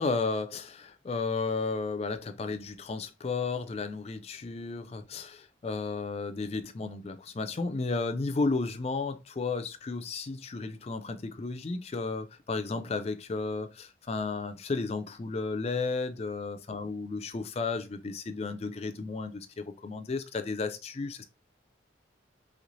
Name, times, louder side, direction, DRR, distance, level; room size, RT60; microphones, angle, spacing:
voice 1, 0.0-21.2, left 3 dB, 30° left, 0.3 m, -33 dB
3.2 x 3.1 x 2.5 m
head